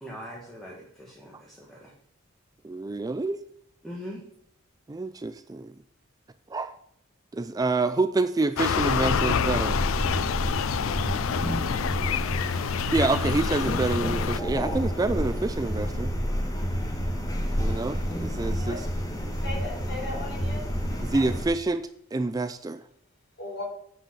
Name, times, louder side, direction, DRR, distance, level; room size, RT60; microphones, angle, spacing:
voice 1, 0.0-1.9 3.8-4.2, equal, ahead, -4 dB, 1.4 m, -41 dB
voice 2, 2.6-3.4 4.9-5.7 6.5-6.8 7.3-9.8 12.9-16.1 17.6-18.9 21.0-21.8 22.1-22.8, right 3 dB, 20° right, 10 dB, 0.3 m, -27 dB
sound 1, 8.6-14.4, left 7 dB, 80° left, 0.4 m, -27 dB
sound 2, 8.7-21.5, equal, 20° left, 1.3 m, -30 dB
voice 3, 19.4-20.6 21.1-21.2 23.4-23.6, left 2 dB, 55° left, -1 dB, 3.1 m, -36 dB
8.8 x 5.3 x 5.8 m, 0.69 s
head